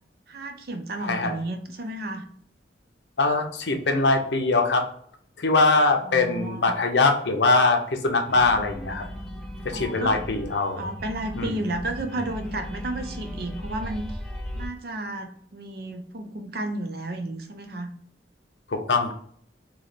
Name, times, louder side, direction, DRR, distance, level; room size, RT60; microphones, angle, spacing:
voice 1, 0.3-2.2 6.0-6.7 9.7-10.2 10.8-14.1 14.5-17.9, right 1 dB, 55° right, 6 dB, 0.5 m, -32 dB
voice 2, 1.0-1.4 3.2-4.8 5.4-9.1 9.6-10.9 11.4-11.6 18.7-19.1, left 3 dB, 70° left, 5 dB, 0.7 m, -22 dB
sound 1, 8.3-14.7, equal, 5° left, 0.5 m, -37 dB
3.2 x 3.0 x 4.0 m, 0.62 s
head